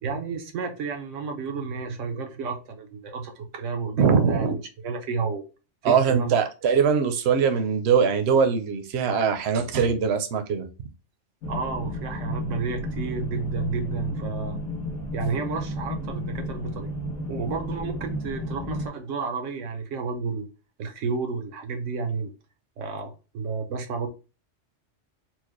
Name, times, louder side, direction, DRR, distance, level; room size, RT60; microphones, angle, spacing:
voice 1, 0.0-5.5 5.8-6.4 11.5-14.6 15.1-16.9 17.3-20.5 20.8-22.3 22.8-24.1, right 5 dB, 85° right, 1.1 m, -31 dB
voice 2, 4.0-4.5 5.8-10.7, right 6 dB, 65° right, 0.9 m, -22 dB
sound 1, 11.4-18.9, left 1 dB, 85° left, 1.4 m, -32 dB
4.4 x 2.0 x 3.0 m
omnidirectional pair, 1.2 m